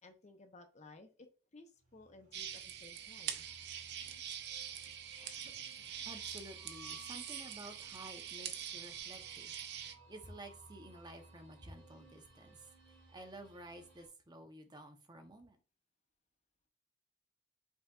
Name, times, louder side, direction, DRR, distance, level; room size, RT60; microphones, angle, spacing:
voice 1, 0.0-3.5 5.2-5.9, left 2 dB, 40° left, 7 dB, 0.7 m, -58 dB
sound 1, 1.8-14.1, equal, 85° right, 2.5 m, -61 dB
sound 2, 2.3-9.9, right 9 dB, 60° right, 0.5 m, -44 dB
voice 2, 6.0-9.5 10.1-12.7 13.1-15.6, right 1 dB, 20° right, 5 dB, 0.8 m, -52 dB
5.5 x 4.0 x 2.3 m, 0.33 s
head